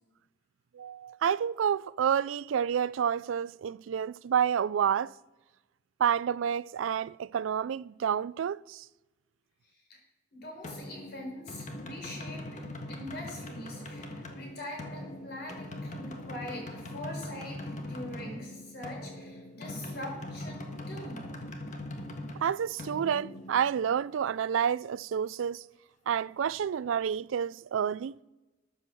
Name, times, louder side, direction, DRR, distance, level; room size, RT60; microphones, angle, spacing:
voice 1, 0.7-5.1 6.0-8.8 22.4-25.6 26.1-28.2, right 8 dB, 80° right, 0.3 m, -29 dB
voice 2, 10.3-12.6 12.9-21.2, left 1 dB, 55° left, 4.5 m, -43 dB
sound 1, 10.6-24.2, left 1 dB, 40° left, 1.5 m, -41 dB
14.0 x 7.9 x 6.1 m
head